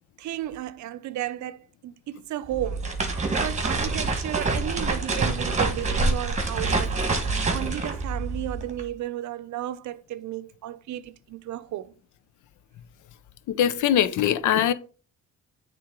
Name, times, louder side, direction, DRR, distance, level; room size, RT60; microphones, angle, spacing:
voice 1, 0.2-7.0 7.2-11.9, right 13 dB, 70° right, 0.6 m, -34 dB
sound 1, 2.5-8.8, right 3 dB, 25° right, 1.4 m, -26 dB
voice 2, 13.5-14.7, left 10 dB, 80° left, 0.7 m, -22 dB
8.5 x 3.6 x 3.7 m
cardioid pair, 90°, 30 cm